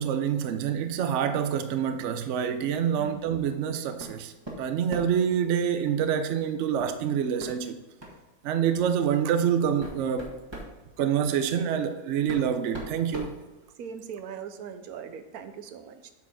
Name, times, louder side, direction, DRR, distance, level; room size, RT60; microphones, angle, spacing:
voice 1, 0.0-7.8 8.4-10.4 11.0-13.4, right 8 dB, 65° right, 0.8 m, -27 dB
sound 1, 4.0-4.2 4.5-5.3 6.8-7.0 7.4-7.5 8.0-8.2 9.0-9.1 9.6-10.7 11.8-11.9 12.3-14.0, right 1 dB, 20° right, 1.7 m, -39 dB
voice 2, 13.8-16.1, right 7 dB, 80° right, 1.1 m, -40 dB
8.2 x 4.5 x 5.9 m
omnidirectional pair, 1.6 m